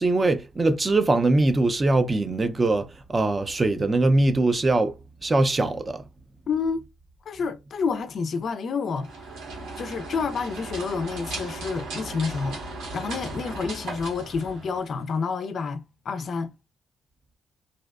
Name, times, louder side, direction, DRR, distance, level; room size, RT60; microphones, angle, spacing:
voice 1, 0.0-5.0 5.2-6.0, right 2 dB, 25° right, 0.4 m, -22 dB
voice 2, 6.5-6.9 7.3-9.2 9.8-12.6 12.9-16.5, left 5 dB, 55° left, 0.3 m, -29 dB
sound 1, 8.9-15.1, right 2 dB, 85° right, 1.2 m, -37 dB
2.5 x 2.1 x 2.3 m
cardioid pair, 90°, 0 cm